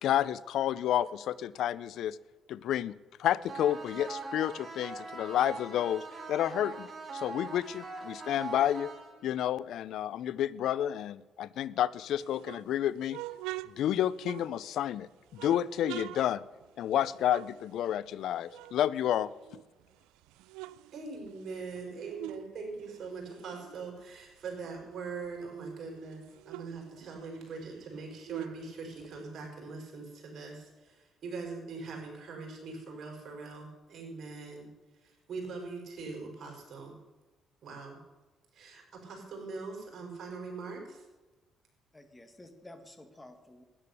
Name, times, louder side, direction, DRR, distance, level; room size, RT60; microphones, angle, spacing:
voice 1, 0.0-2.2 2.5-2.9 3.2-6.0 6.3-6.9 7.1-8.9 9.2-13.2 13.8-16.4 16.8-19.3, left 11 dB, 75° left, 19 dB, 0.5 m, -30 dB
sound 1, 3.5-9.5, right 3 dB, 40° right, 2.8 m, -42 dB
sound 2, 12.2-14.9 15.3-18.2 18.5-19.8 20.2-22.5 22.8-25.3 25.7-25.8 26.0-29.5, right 17 dB, 90° right, 0.3 m, -45 dB
voice 2, 20.9-34.7 35.0-36.9 37.6-38.0 38.5-41.1, right 4 dB, 60° right, 0 dB, 5.6 m, -42 dB
voice 3, 41.9-43.6, left 1 dB, 15° left, 7 dB, 2.1 m, -52 dB
12.5 x 10.5 x 6.8 m, 1.2 s
supercardioid pair, 70°, 0 cm